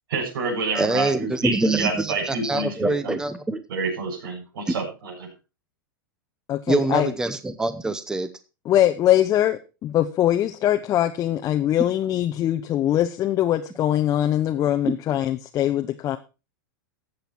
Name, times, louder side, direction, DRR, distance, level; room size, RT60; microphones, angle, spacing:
voice 1, 0.1-3.2 3.7-5.3, right 3 dB, 75° right, -1 dB, 7.3 m, -28 dB
voice 2, 0.7-3.6 6.7-8.3 14.8-15.0, right 2 dB, 5° right, 12 dB, 0.9 m, -24 dB
voice 3, 6.5-7.1 8.7-16.2, left 12 dB, 30° left, 6 dB, 0.9 m, -22 dB
14.0 x 7.9 x 4.5 m, 0.31 s
hypercardioid pair, 130°, 12 cm